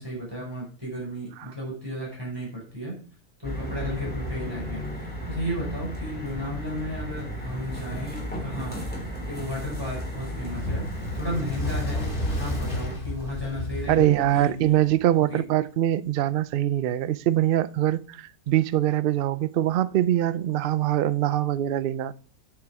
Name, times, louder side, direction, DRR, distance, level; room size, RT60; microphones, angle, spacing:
voice 1, 0.0-2.9 3.4-8.8 9.3-10.9 11.1-14.5 15.3-15.4, equal, 15° right, 5.3 m, -34 dB
sound 1, 3.4-13.0, equal, 5° left, 3.4 m, -34 dB
Fire, 10.4-15.0, left 1 dB, 35° left, 2.2 m, -32 dB
voice 2, 13.9-22.1, right 12 dB, 90° right, 0.4 m, -23 dB
9.0 x 7.4 x 4.7 m
omnidirectional pair, 1.5 m